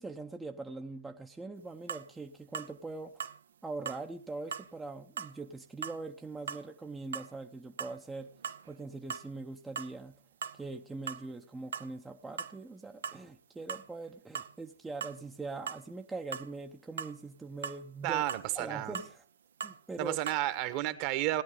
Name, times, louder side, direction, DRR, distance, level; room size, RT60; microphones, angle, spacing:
voice 1, 0.0-3.2 3.6-8.3 8.6-10.2 10.5-18.2 18.5-19.2 19.6-20.2, right 3 dB, 10° right, 3 dB, 0.7 m, -42 dB
sound 1, 1.9-2.1 2.5-2.7 3.2-3.4 3.9-4.0 4.5-4.7 5.2-5.3 5.8-6.0 6.5-6.7 7.1-7.3 7.8-8.0 8.3-8.8 9.1-9.3 9.8-9.9 10.4-10.6 11.1-11.3 11.7-11.9 12.4-12.6 13.0-13.2 13.7-13.9 14.3-14.5 15.0-15.2 15.7-15.8 16.3-16.5 17.0-17.2 17.6-17.8 18.3-18.5 18.9-19.1 19.6-19.8 20.3-20.4, right 7 dB, 70° right, 0.6 m, -39 dB
voice 2, 18.0-18.9 20.0-21.4, right 15 dB, 40° right, 12 dB, 1.2 m, -32 dB
16.5 x 10.5 x 3.7 m, 0.42 s
hypercardioid pair, 120°, 0 cm